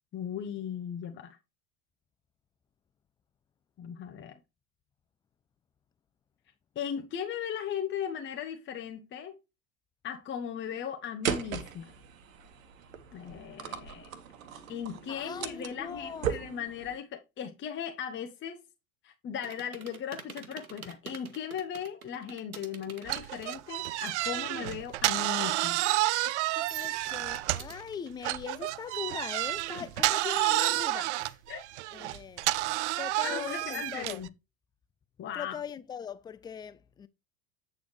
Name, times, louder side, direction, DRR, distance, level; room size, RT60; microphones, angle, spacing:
voice 1, 0.1-1.4 3.8-4.4 6.7-9.4 10.0-11.9 13.1-14.1 14.7-18.6 19.0-25.8 31.5-31.6 33.2-34.3 35.2-35.6, left 8 dB, 25° left, 1.1 m, -37 dB
sound 1, 11.2-17.0, right 8 dB, 70° right, 1.3 m, -38 dB
voice 2, 15.1-16.3 26.2-31.4 31.9-32.5 33.0-34.2 35.3-37.1, left 7 dB, 10° left, 0.4 m, -41 dB
sound 2, 19.4-24.4 24.7-26.3 26.7-27.9, right 5 dB, 85° right, 1.3 m, -49 dB
sound 3, 23.1-27.8 28.2-34.3, right 17 dB, 55° right, 0.6 m, -30 dB
8.7 x 6.8 x 3.2 m
figure-of-eight pair, 80°, 42 cm